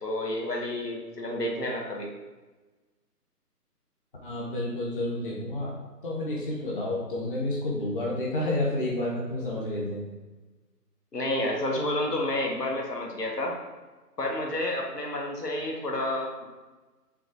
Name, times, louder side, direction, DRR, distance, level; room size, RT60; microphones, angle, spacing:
voice 1, 0.0-2.1 11.1-13.5 14.2-16.4, left 1 dB, 75° left, 0 dB, 1.6 m, -30 dB
voice 2, 4.2-5.8 6.0-10.0, left 1 dB, 35° left, -3 dB, 0.8 m, -30 dB
6.0 x 3.4 x 4.7 m, 1.2 s
figure-of-eight pair, 160°, 48 cm